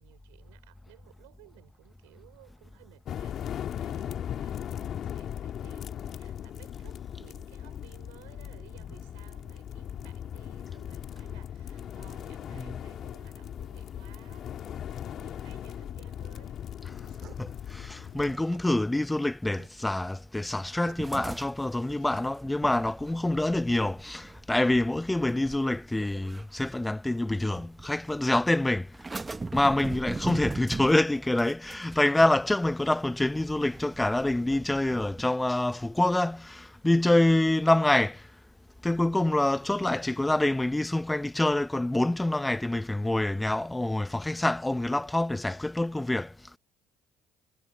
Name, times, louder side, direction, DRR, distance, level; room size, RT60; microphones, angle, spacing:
voice 1, 0.0-16.6, right 26 dB, 85° right, 3.5 m, -57 dB
sound 1, 3.1-18.3, left 10 dB, 55° left, 2.1 m, -38 dB
sound 2, 17.0-23.1, right 11 dB, 60° right, 2.6 m, -55 dB
voice 2, 17.4-29.1 29.5-38.3 38.8-46.6, left 1 dB, 10° left, 0.9 m, -26 dB
sound 3, 21.0-27.2 27.6-28.2 28.9-35.2, right 3 dB, 20° right, 0.9 m, -40 dB
hypercardioid pair, 70°, 0 cm